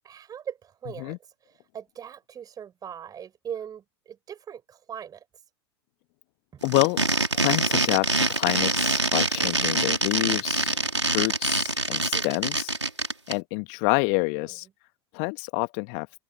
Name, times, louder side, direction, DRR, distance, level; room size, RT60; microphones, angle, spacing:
voice 1, 0.0-1.2 1.7-5.2 6.5-6.6 12.1-12.4, right 8 dB, 25° right, 6.9 m, -40 dB
voice 2, 6.6-7.0 7.3-10.8 11.1-12.7 13.3-14.7 15.1-16.1, left 40 dB or more, 45° left, 1.8 m, -27 dB
sound 1, 6.6-13.3, right 2 dB, 85° right, 3.5 m, -25 dB
figure-of-eight pair, 85°, 14 cm